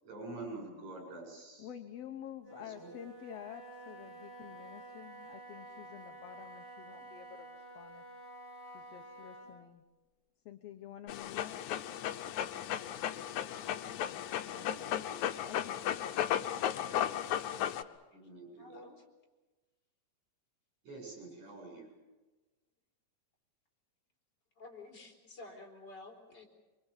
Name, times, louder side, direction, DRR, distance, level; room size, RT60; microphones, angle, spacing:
voice 1, 0.0-1.7 2.5-2.9 14.5-15.2 17.5-17.7 18.1-18.8 20.8-21.9, right 2 dB, 75° right, 0 dB, 9.1 m, -47 dB
voice 2, 1.6-8.0 8.6-9.9 10.5-11.6 14.3-17.0, left 10 dB, 65° left, 7 dB, 2.0 m, -50 dB
Wind instrument woodwind instrument, 2.4-9.6, right 2 dB, 20° right, 8.4 m, -50 dB
Dog, 11.1-17.8, left 10 dB, 90° left, 2.3 m, -35 dB
voice 3, 18.6-19.0 24.6-26.5, left 2 dB, 35° left, 0 dB, 4.7 m, -51 dB
24.5 x 24.0 x 7.3 m, 1.2 s
omnidirectional pair, 3.3 m